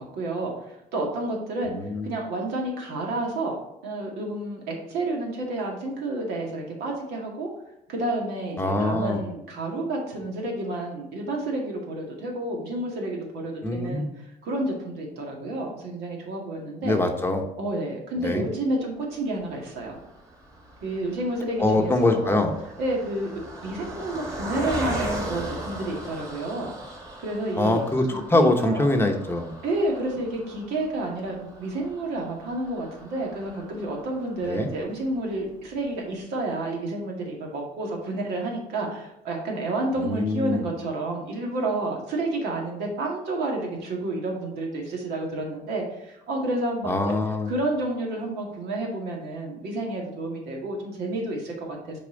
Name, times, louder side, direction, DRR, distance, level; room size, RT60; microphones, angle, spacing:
voice 1, 0.0-1.7 2.0-3.6 3.8-7.5 7.9-17.0 17.6-20.0 20.8-22.4 22.8-23.3 23.6-26.7 27.2-28.9 29.6-46.9 47.5-52.0, right 2 dB, 80° right, -1 dB, 2.0 m, -30 dB
voice 2, 1.7-2.1 8.6-9.2 13.6-14.1 16.8-17.4 18.2-18.4 21.6-22.5 27.6-29.5 34.4-34.7 40.0-40.7 46.8-47.5, left 2 dB, 15° left, 3 dB, 0.9 m, -23 dB
Car passing by, 19.4-34.9 35.4-35.5 35.7-35.9, right 1 dB, 20° right, 1.8 m, -39 dB
7.0 x 4.3 x 3.8 m, 0.84 s
cardioid pair, 110°, 17 cm